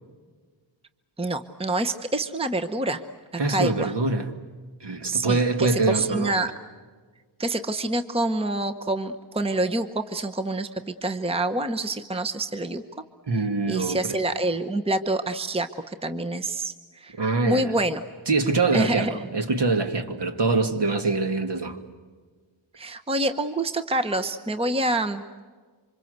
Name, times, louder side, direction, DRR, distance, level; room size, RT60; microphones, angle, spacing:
voice 1, 1.2-3.0 3.5-3.9 5.1-6.5 7.4-12.8 13.7-17.1 17.5-18.0 18.7-19.2 22.8-25.2, right 2 dB, 10° right, 8 dB, 0.9 m, -27 dB
voice 2, 3.4-4.3 4.8-6.4 13.3-14.2 17.2-17.7 18.3-21.8, right 3 dB, 60° right, 7 dB, 2.2 m, -24 dB
27.5 x 25.5 x 8.0 m, 1.5 s
wide cardioid pair, 145°, 48 cm